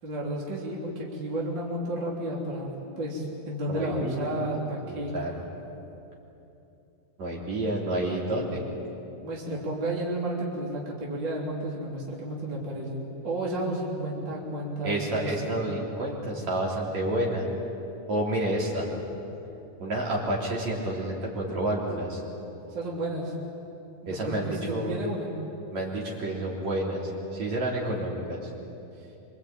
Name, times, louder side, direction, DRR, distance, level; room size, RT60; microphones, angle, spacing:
voice 1, 0.0-5.1 9.2-15.6 22.7-23.3 24.0-25.3 29.0-29.1, right 1 dB, 30° right, -3 dB, 3.8 m, -32 dB
voice 2, 3.7-4.5 4.9-5.3 7.2-8.6 14.8-17.5 18.1-18.9 19.8-22.2 24.1-25.0 25.7-28.5, right 1 dB, 50° right, -3 dB, 4.7 m, -29 dB
26.0 x 25.0 x 9.0 m, 2.9 s
omnidirectional pair, 4.3 m